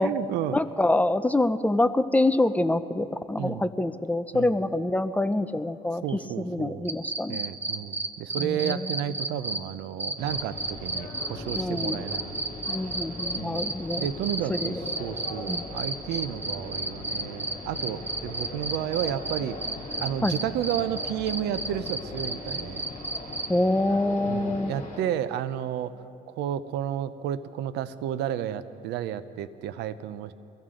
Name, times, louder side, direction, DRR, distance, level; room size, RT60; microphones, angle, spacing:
voice 1, 0.0-0.6 3.4-3.7 4.3-4.5 6.0-6.9 7.3-12.3 13.4-13.6 14.0-19.6 20.0-22.8 24.2-25.9 26.3-30.3, right 10 dB, 85° right, 14 dB, 0.7 m, -32 dB
voice 2, 0.5-7.4 8.3-8.8 11.5-12.1 12.7-14.1 14.5-14.8 15.5-15.6 20.2-20.3 23.5-24.7, left 2 dB, 10° left, 11 dB, 0.5 m, -26 dB
sound 1, 6.8-9.6 10.0-23.5, right 2 dB, 10° right, 1.0 m, -31 dB
sound 2, 10.2-25.0, left 3 dB, 45° left, 3.7 m, -40 dB
23.5 x 15.5 x 3.8 m, 2.6 s
cardioid pair, 110°, 17 cm